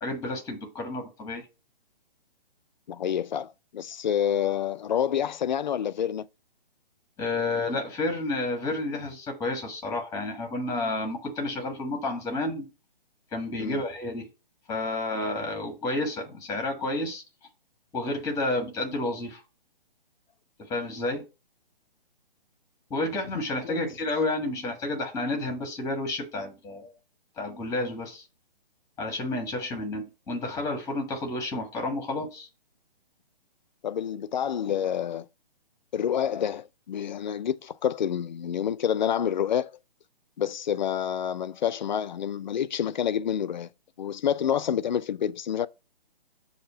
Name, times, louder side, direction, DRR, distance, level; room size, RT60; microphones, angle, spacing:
voice 1, 0.0-1.4 7.2-12.7 13.3-14.2 14.7-17.2 17.9-19.4 20.7-21.2 22.9-26.9 27.4-28.2 29.0-32.5, left 2 dB, 10° left, 1.3 m, -30 dB
voice 2, 2.9-6.3 13.6-13.8 23.6-23.8 33.8-35.3 35.9-39.7 40.4-43.7 44.0-45.7, left 9 dB, 50° left, 0.4 m, -28 dB
6.4 x 2.7 x 5.5 m
figure-of-eight pair, 140°, 29 cm